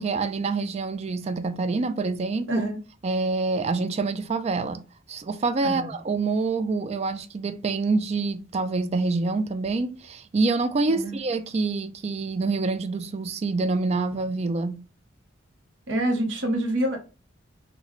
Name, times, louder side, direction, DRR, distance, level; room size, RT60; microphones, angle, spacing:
voice 1, 0.0-2.7 3.0-4.8 5.1-14.8, right 3 dB, 35° right, 0.3 m, -26 dB
voice 2, 15.9-17.0, right 1 dB, 65° right, 0.9 m, -26 dB
3.0 x 2.2 x 3.9 m
head